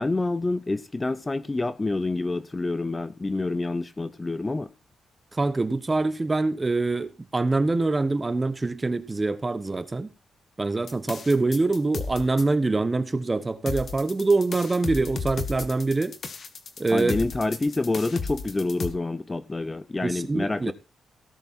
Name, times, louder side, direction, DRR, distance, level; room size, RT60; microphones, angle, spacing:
voice 1, 0.0-4.7 16.9-20.7, left 2 dB, 20° left, 0.7 m, -27 dB
voice 2, 5.3-10.1 10.6-16.1 16.8-17.2 20.0-20.7, right 3 dB, 20° right, 1.1 m, -24 dB
sound 1, 10.9-12.4 13.7-18.9, left 4 dB, 50° left, 1.6 m, -34 dB
17.0 x 6.7 x 4.4 m
cardioid pair, 105°, 0 cm